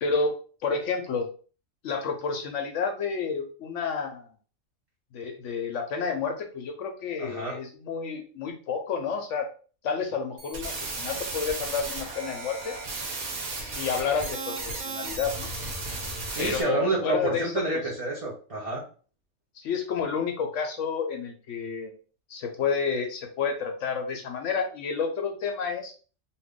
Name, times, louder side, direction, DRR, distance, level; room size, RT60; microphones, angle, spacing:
voice 1, 0.0-1.3 1.8-4.3 5.1-9.5 9.8-12.8 13.6-15.5 16.4-17.8 19.5-21.9 22.3-25.9, left 5 dB, 70° left, 4 dB, 0.8 m, -30 dB
voice 2, 7.2-7.6 16.3-18.8, right 2 dB, 40° right, -4 dB, 0.5 m, -29 dB
sound 1, 10.4-16.6, right 3 dB, 85° right, 1.3 m, -34 dB
2.7 x 2.4 x 3.5 m, 0.39 s
omnidirectional pair, 1.4 m